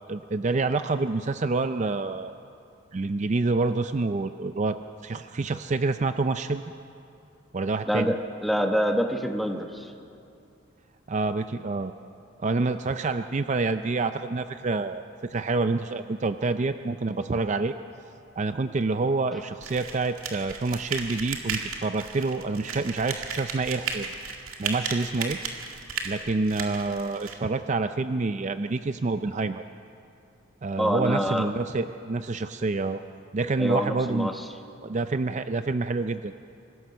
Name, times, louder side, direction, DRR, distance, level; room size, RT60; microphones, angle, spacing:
voice 1, 0.1-2.3 2.9-6.7 7.5-8.1 11.1-11.9 12.4-17.7 18.4-24.1 24.6-25.4 26.0-29.6 30.6-33.0 33.3-34.3 34.8-36.3, right 3 dB, 35° right, 9 dB, 0.4 m, -27 dB
voice 2, 7.9-9.9 30.8-31.5 33.6-34.3, equal, ahead, 4 dB, 1.0 m, -26 dB
sound 1, 19.6-27.3, right 5 dB, 85° right, 2.1 m, -35 dB
24.5 x 15.5 x 6.7 m, 2.6 s
head